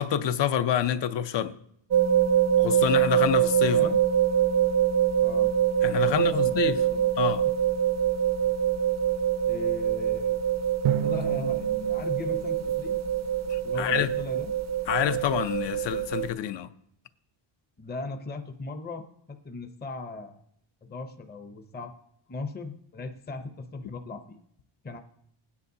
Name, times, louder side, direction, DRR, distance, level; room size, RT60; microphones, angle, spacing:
voice 1, 0.0-1.6 2.6-3.9 5.8-6.8 7.2-7.5 13.5-14.1 14.9-16.7, left 9 dB, 60° left, 0.6 m, -27 dB
sound 1, 1.9-16.3, right 9 dB, 35° right, 0.4 m, -25 dB
voice 2, 3.7-4.0 5.2-5.5 6.0-7.1 9.4-10.4 11.0-13.0 13.6-14.5 17.8-20.4 20.8-21.9 22.3-24.4 24.8-25.0, left 3 dB, 20° left, 0.6 m, -38 dB
Drum, 10.8-13.6, right 11 dB, 85° right, 0.6 m, -33 dB
20.5 x 9.6 x 2.7 m
wide cardioid pair, 160°, 49 cm